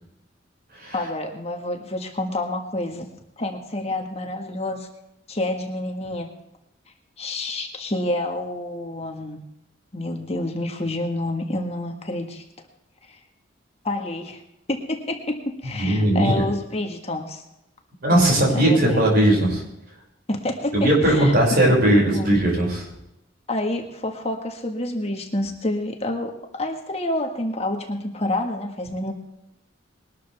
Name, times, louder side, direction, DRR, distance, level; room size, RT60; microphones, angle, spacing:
voice 1, 0.9-3.0 3.4-4.9 5.3-6.3 7.2-9.4 9.9-12.4 13.1-13.2 13.8-14.4 14.7-17.4 18.1-19.0 20.3-21.3 22.1-22.4 23.5-29.1, left 1 dB, 35° left, 3 dB, 1.6 m, -28 dB
voice 2, 15.8-16.4 18.0-19.6 20.7-22.9, right 1 dB, 50° right, -2 dB, 6.2 m, -18 dB
21.0 x 12.5 x 3.5 m, 0.86 s
head